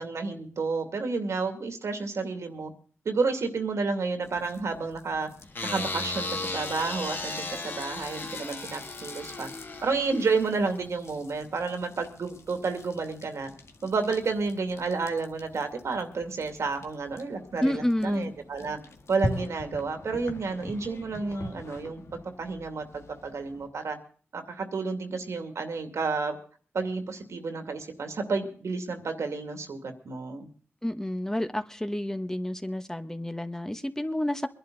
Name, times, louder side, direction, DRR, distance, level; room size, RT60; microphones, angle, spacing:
voice 1, 0.0-2.7 3.0-5.3 5.6-9.5 9.8-13.5 13.8-18.8 19.1-22.0 22.4-24.0 24.3-26.4 26.7-30.5, right 4 dB, 85° right, 6 dB, 2.5 m, -30 dB
sound 1, 4.2-23.7, left 2 dB, 85° left, 1.9 m, -43 dB
sound 2, 5.5-10.9, left 3 dB, 50° left, 2.8 m, -36 dB
voice 2, 17.6-18.3 30.8-34.5, left 1 dB, 10° left, 9 dB, 1.2 m, -29 dB
23.5 x 11.5 x 4.0 m, 0.43 s
wide cardioid pair, 70°, 5 cm